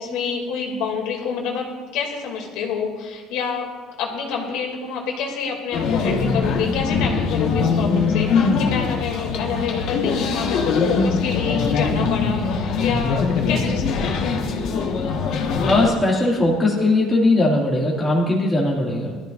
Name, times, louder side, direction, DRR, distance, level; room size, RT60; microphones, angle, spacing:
voice 1, 0.0-3.7 4.0-14.7, left 6 dB, 70° left, 0 dB, 2.6 m, -28 dB
sound 1, 5.7-15.9, left 5 dB, 50° left, 1.5 m, -22 dB
voice 2, 15.6-19.2, left 2 dB, 10° left, -5 dB, 2.2 m, -19 dB
21.0 x 13.5 x 2.6 m, 1.4 s
cardioid pair, 175°, 0 cm